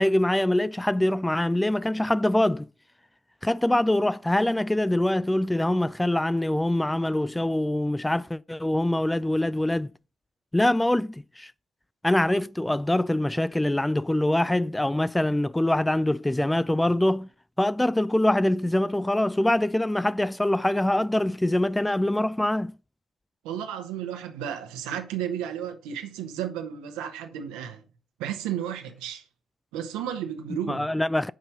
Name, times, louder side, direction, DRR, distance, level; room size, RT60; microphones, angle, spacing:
voice 1, 0.0-2.7 3.4-9.9 10.5-11.5 12.0-17.3 17.6-22.7 30.7-31.3, left 1 dB, 10° left, 0.3 m, -24 dB
voice 2, 23.4-27.8 28.2-29.2 29.7-30.9, right 9 dB, 70° right, 1.1 m, -33 dB
7.7 x 5.4 x 5.1 m
figure-of-eight pair, 40°, 0 cm